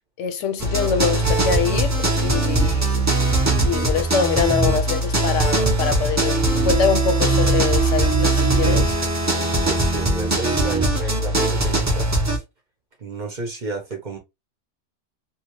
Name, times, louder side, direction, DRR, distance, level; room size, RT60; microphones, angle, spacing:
voice 1, 0.2-3.0 3.6-9.0, left 7 dB, 75° left, 0.9 m, -24 dB
sound 1, 0.6-12.4, right 2 dB, 25° right, 0.4 m, -20 dB
voice 2, 9.7-12.4 13.0-14.2, right 3 dB, 45° right, 0.7 m, -32 dB
2.8 x 2.2 x 2.9 m
omnidirectional pair, 1.3 m